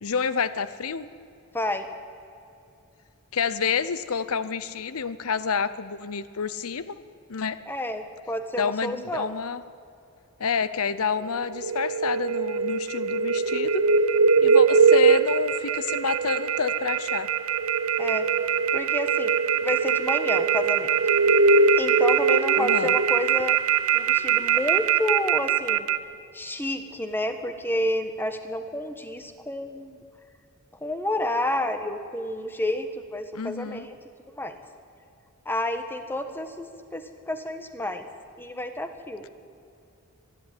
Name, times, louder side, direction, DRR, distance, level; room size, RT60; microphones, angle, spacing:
voice 1, 0.0-1.1 3.3-6.9 7.3-7.6 8.6-9.6 10.4-13.9 14.4-17.3 22.6-22.9 33.3-33.9, left 5 dB, 75° left, 15 dB, 0.7 m, -28 dB
voice 2, 1.5-1.9 7.7-9.3 18.0-18.3 18.7-19.3 19.6-20.9 21.7-23.6 23.9-25.9 26.3-30.0 30.8-34.0 34.4-34.6 35.4-38.1 38.4-39.2, left 1 dB, 10° left, 8 dB, 1.3 m, -30 dB
sound 1, 11.2-26.0, right 5 dB, 65° right, 0.7 m, -22 dB
24.0 x 11.0 x 9.9 m, 2.6 s
head